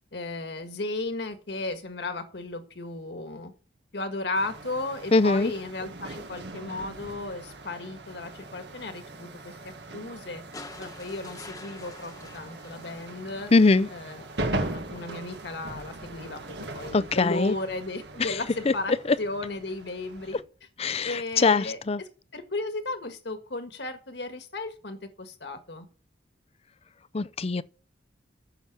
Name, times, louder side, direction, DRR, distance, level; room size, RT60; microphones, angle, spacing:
voice 1, 0.1-3.5 3.9-10.4 10.8-13.5 13.9-14.3 14.5-20.4 21.0-21.8 22.3-25.9, left 2 dB, 65° left, 1.6 m, -35 dB
sound 1, 4.3-20.4, right 2 dB, 65° right, 1.8 m, -39 dB
voice 2, 5.1-5.5 13.5-13.9 16.9-17.5 18.2-19.2 20.3-20.4 20.8-22.0 27.1-27.6, left 3 dB, 35° left, 0.5 m, -22 dB
sound 2, 10.5-13.8 15.2-15.3, left 2 dB, 20° left, 1.2 m, -46 dB
14.5 x 6.0 x 6.1 m
head